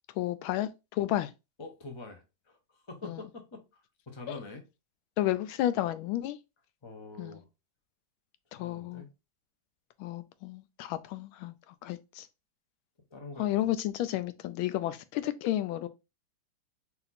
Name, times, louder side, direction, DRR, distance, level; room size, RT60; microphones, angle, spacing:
voice 1, 0.1-1.3 3.0-3.2 4.3-4.4 5.2-6.4 7.2-7.4 8.5-9.0 10.0-12.3 13.4-15.9, left 13 dB, 90° left, 1.4 m, -32 dB
voice 2, 1.6-3.8 4.1-4.6 6.8-7.5 8.5-9.1 13.1-13.7, left 3 dB, 40° left, 0.4 m, -45 dB
4.1 x 2.9 x 4.1 m
omnidirectional pair, 2.2 m